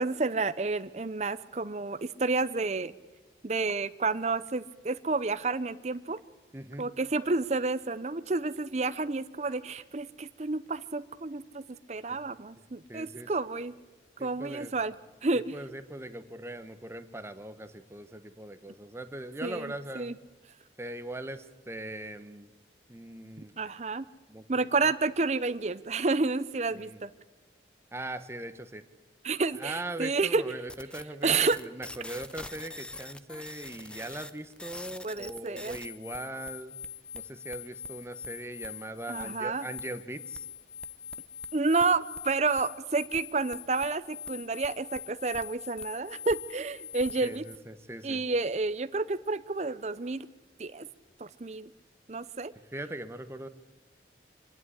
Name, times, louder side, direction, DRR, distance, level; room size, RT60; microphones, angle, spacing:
voice 1, 0.0-2.9 3.4-6.2 6.8-11.6 11.9-13.8 14.2-14.9 15.2-15.6 19.4-20.2 23.6-24.0 24.5-27.1 29.2-30.5 31.2-31.6 35.0-35.8 39.1-39.7 41.5-47.4 48.0-50.3 50.6-50.9 51.2-51.7 52.1-52.5, right 3 dB, 40° right, 14 dB, 0.6 m, -30 dB
voice 2, 6.5-6.9 12.1-12.2 12.9-13.3 14.2-14.7 15.5-20.2 20.8-22.5 22.9-23.5 24.3-24.6 26.7-27.0 27.9-28.8 29.6-36.8 37.1-40.4 47.2-48.2 52.7-53.5, right 1 dB, 15° right, 10 dB, 0.9 m, -40 dB
sound 1, 30.7-47.6, left 4 dB, 5° left, 0.6 m, -43 dB
25.5 x 10.5 x 9.5 m, 1.3 s
head